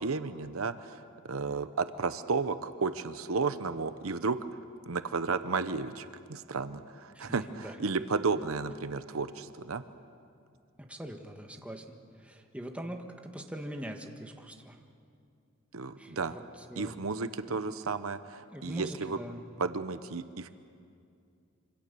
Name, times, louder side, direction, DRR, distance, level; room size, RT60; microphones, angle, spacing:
voice 1, 0.0-4.4 4.9-9.8 15.7-16.4 16.8-19.2 19.6-20.6, right 4 dB, 80° right, 12 dB, 0.9 m, -33 dB
voice 2, 7.1-7.8 10.9-11.8 12.2-13.0 13.3-14.8 16.0-16.2 16.7-16.9 17.5-17.6 18.5-19.4, equal, 5° right, 3 dB, 1.6 m, -42 dB
26.5 x 26.0 x 6.9 m, 2.4 s
head